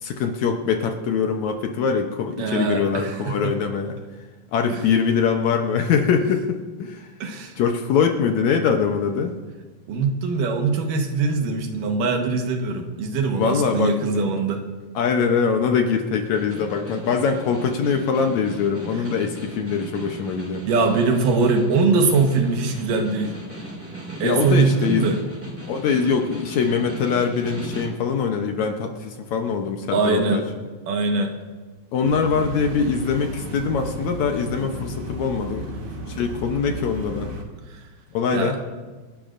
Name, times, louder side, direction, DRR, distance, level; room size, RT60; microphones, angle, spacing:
voice 1, 0.0-4.0 4.5-7.1 7.6-9.3 13.3-14.3 15.0-20.6 24.2-25.1 25.7-30.4 31.9-35.8 36.1-37.3 38.1-38.6, left 6 dB, 70° left, 4 dB, 1.9 m, -23 dB
voice 2, 2.4-3.5 4.7-4.8 7.2-7.6 9.9-14.7 19.0-19.1 20.7-23.4 24.2-25.2 29.9-30.5 30.9-31.3 37.7-37.8 38.3-38.6, right 4 dB, 75° right, 3 dB, 2.8 m, -22 dB
Snare drum, 16.2-28.0, right 1 dB, 5° right, 1.3 m, -37 dB
sound 1, 32.0-37.4, right 2 dB, 50° right, 1.8 m, -33 dB
28.0 x 11.5 x 2.5 m, 1.3 s
omnidirectional pair, 3.8 m